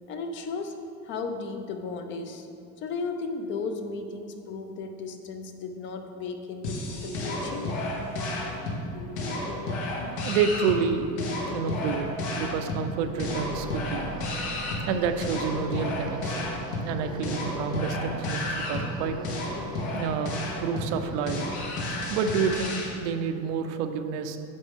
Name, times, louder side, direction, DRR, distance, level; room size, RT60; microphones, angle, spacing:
voice 1, 0.1-2.5 2.8-7.7, left 4 dB, 35° left, 6 dB, 0.5 m, -35 dB
sound 1, 6.6-22.9, left 2 dB, 75° left, 2.1 m, -32 dB
voice 2, 10.2-11.1 11.5-12.1 12.4-14.1 14.9-16.5 16.8-19.2 19.9-21.4 22.1-24.4, right 6 dB, 85° right, 8 dB, 0.8 m, -29 dB
sound 2, 13.2-22.6, right 3 dB, 15° right, 0.5 m, -43 dB
9.6 x 7.2 x 3.6 m, 2.5 s
cardioid pair, 170°, 35 cm